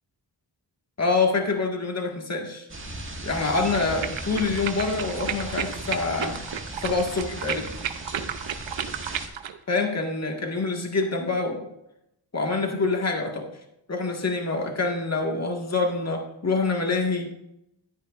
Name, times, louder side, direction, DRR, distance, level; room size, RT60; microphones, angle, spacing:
voice 1, 1.0-2.7 3.2-6.4 6.8-7.7 9.7-11.7 12.3-13.5 13.9-17.6, left 3 dB, 35° left, 2 dB, 1.8 m, -26 dB
sound 1, 2.7-9.3, right 1 dB, 25° right, 1.9 m, -37 dB
sound 2, 3.4-9.6, right 9 dB, 80° right, 0.8 m, -33 dB
11.5 x 10.0 x 2.5 m, 0.83 s
cardioid pair, 60°, 46 cm